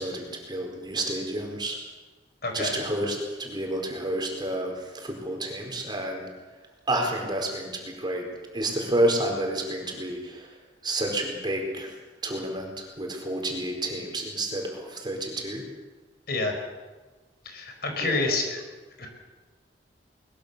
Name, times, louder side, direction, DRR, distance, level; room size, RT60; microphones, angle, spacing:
voice 1, 0.0-1.8 2.5-6.3 6.9-8.2 8.5-10.5 10.8-11.9 12.2-15.6 18.0-18.3, right 1 dB, 25° right, 2 dB, 4.7 m, -30 dB
voice 2, 2.4-2.8 16.3-16.6 17.4-18.6 19.0-19.1, left 2 dB, 60° left, 4 dB, 4.9 m, -28 dB
22.5 x 21.0 x 7.0 m, 1.3 s
head